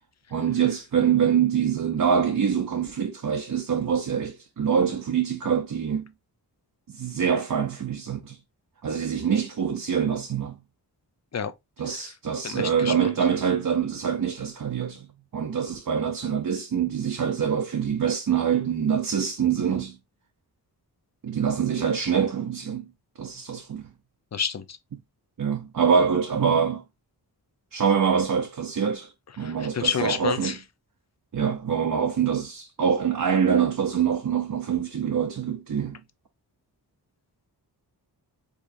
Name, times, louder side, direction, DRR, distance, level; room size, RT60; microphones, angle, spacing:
voice 1, 0.3-6.1 6.9-8.4 8.8-10.6 11.8-15.1 15.3-20.0 21.2-22.9 23.2-23.9 25.4-26.8 27.7-30.6 31.3-36.0, right 7 dB, 55° right, 0.6 m, -25 dB
voice 2, 12.4-12.9 24.3-24.8 29.4-30.6, left 6 dB, 40° left, 0.6 m, -29 dB
4.8 x 3.6 x 2.6 m
wide cardioid pair, 85°, 40 cm